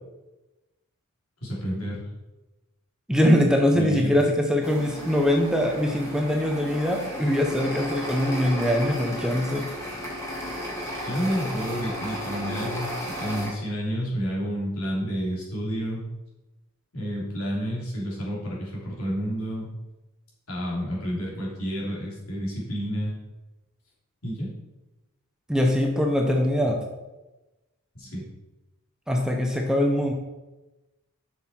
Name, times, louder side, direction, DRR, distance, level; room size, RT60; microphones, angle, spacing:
voice 1, 1.4-2.1 3.7-4.1 11.0-16.0 16.9-19.7 20.5-23.1 24.2-24.5 27.9-28.2, equal, 75° left, -4 dB, 3.2 m, -30 dB
voice 2, 3.1-9.6 25.5-26.8 29.1-30.1, left 1 dB, 5° right, 2 dB, 0.8 m, -22 dB
sound 1, 4.6-13.5, equal, 15° left, 2.2 m, -34 dB
7.3 x 6.5 x 4.4 m, 1.0 s
head